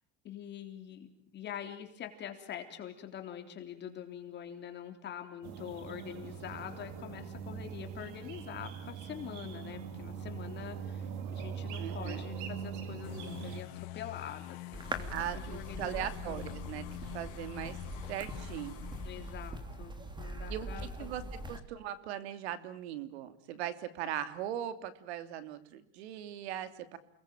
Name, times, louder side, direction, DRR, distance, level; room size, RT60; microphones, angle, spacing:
voice 1, 0.2-15.1 15.4-16.5 19.0-21.3, left 9 dB, 35° left, 5 dB, 3.5 m, -45 dB
sound 1, 5.4-13.6, right 6 dB, 60° right, 3.5 m, -42 dB
voice 2, 11.8-12.2 15.1-16.9 17.1-17.8 18.1-18.9 20.5-21.2 21.5-27.0, right 11 dB, 85° right, 11 dB, 2.9 m, -39 dB
sound 2, 13.0-19.5, left 14 dB, 65° left, 3.3 m, -46 dB
sound 3, 14.7-21.6, right 1 dB, 15° right, 3.0 m, -42 dB
29.5 x 21.0 x 9.0 m, 0.67 s
supercardioid pair, 145°, 32 cm